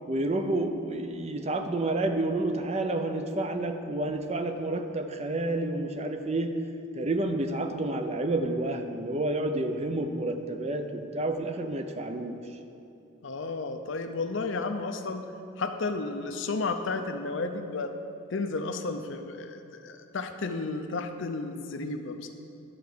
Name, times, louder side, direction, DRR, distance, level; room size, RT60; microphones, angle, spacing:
voice 1, 0.1-6.6 6.9-12.6, right 2 dB, 30° right, 7 dB, 0.5 m, -30 dB
voice 2, 13.2-15.2 15.6-17.9 18.3-22.3, left 3 dB, 60° left, 7 dB, 0.6 m, -32 dB
11.0 x 4.6 x 6.7 m, 2.7 s
head